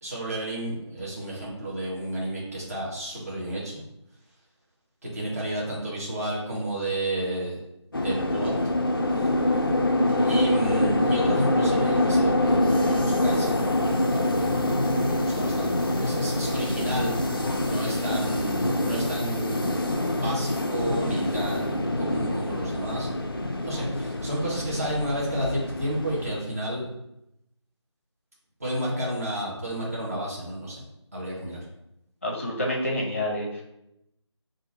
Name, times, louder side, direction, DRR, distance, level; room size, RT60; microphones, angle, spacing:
voice 1, 0.0-3.8 5.0-7.6 7.9-8.5 9.1-9.3 10.2-17.2 17.7-19.8 20.1-26.9 28.6-30.8 31.1-31.6, right 1 dB, 30° right, -6 dB, 1.2 m, -31 dB
sound 1, 7.9-26.4, left 1 dB, 50° left, 0.4 m, -25 dB
voice 2, 32.2-33.6, left 1 dB, 25° left, -2 dB, 0.7 m, -28 dB
6.1 x 2.6 x 2.7 m, 0.83 s
figure-of-eight pair, 165°, 15 cm